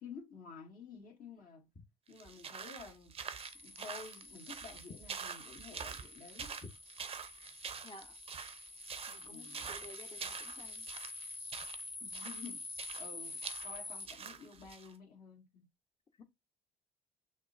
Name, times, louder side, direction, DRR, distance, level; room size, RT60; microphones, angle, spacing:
voice 1, 0.0-1.7 2.1-3.1 3.6-6.5 9.1-9.7 12.0-12.6 13.0-15.6, left 5 dB, 55° left, 2.0 m, -51 dB
sound 1, 2.1-14.9, right 6 dB, 30° right, 0.6 m, -46 dB
sound 2, 3.4-14.1, left 3 dB, 10° left, 0.3 m, -48 dB
voice 2, 9.1-10.9 16.2-16.3, left 2 dB, 30° left, 1.0 m, -53 dB
6.3 x 2.2 x 2.6 m
hypercardioid pair, 65°, 18 cm